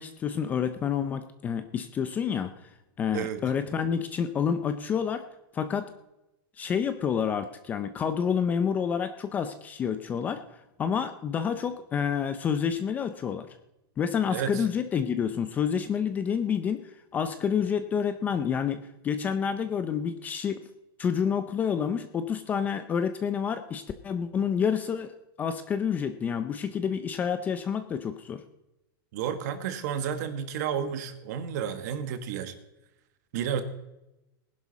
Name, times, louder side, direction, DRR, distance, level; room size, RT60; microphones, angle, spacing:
voice 1, 0.0-2.7 3.0-5.3 5.5-5.9 6.6-10.4 10.8-13.5 14.0-16.8 17.1-20.6 21.0-28.4, left 7 dB, 15° left, 10 dB, 0.5 m, -28 dB
voice 2, 14.3-14.7 29.1-32.5 33.3-33.6, right 8 dB, 45° right, 10 dB, 1.5 m, -31 dB
19.0 x 11.0 x 4.1 m, 0.94 s
supercardioid pair, 175°, 13 cm